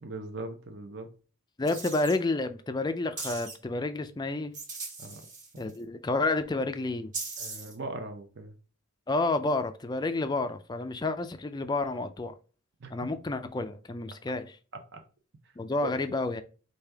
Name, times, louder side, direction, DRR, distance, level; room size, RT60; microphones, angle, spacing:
voice 1, 0.0-1.1 5.0-5.2 5.5-5.7 7.4-8.5 12.8-12.9 14.9-15.0 15.8-15.9, right 2 dB, 50° right, 0.6 m, -39 dB
voice 2, 1.6-4.5 5.6-7.1 9.1-12.3 12.9-14.6 15.6-16.4, left 2 dB, 20° left, 0.3 m, -30 dB
sound 1, 1.7-2.2 3.2-3.5 4.5-5.8 7.1-7.7, right 4 dB, 35° right, 1.3 m, -39 dB
5.0 x 2.7 x 3.4 m
head